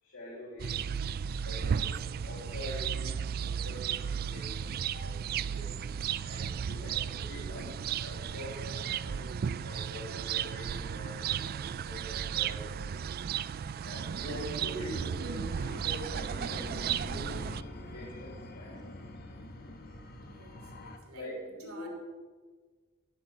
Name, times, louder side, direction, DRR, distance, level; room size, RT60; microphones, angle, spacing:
voice 1, 0.0-0.9 1.4-5.7 6.2-9.3 9.6-12.7 13.8-17.4 17.8-18.8 21.1-21.3 21.6-21.9, left 1 dB, 70° left, -8 dB, 4.7 m, -44 dB
sound 1, 0.6-17.6, right 8 dB, 45° right, 0.3 m, -34 dB
sound 2, 15.5-21.0, left 1 dB, 45° left, 1.3 m, -45 dB
voice 2, 20.2-21.9, right 2 dB, 70° right, 0 dB, 3.3 m, -55 dB
14.0 x 6.3 x 7.5 m, 1.4 s
head